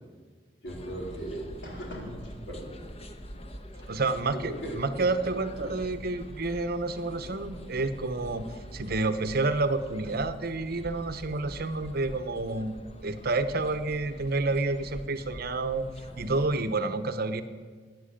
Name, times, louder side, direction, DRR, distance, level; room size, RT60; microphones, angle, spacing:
voice 1, 0.6-2.1 2.5-2.7 3.8-4.0 4.3-4.8 5.6-5.7, right 1 dB, 75° left, -2 dB, 4.1 m, -38 dB
sound 1, 0.7-16.6, equal, 35° left, 1.1 m, -45 dB
voice 2, 3.9-8.4 8.7-12.7 13.0-15.9 16.2-17.4, right 3 dB, 55° right, 11 dB, 0.9 m, -29 dB
13.0 x 9.6 x 8.5 m, 1.5 s
head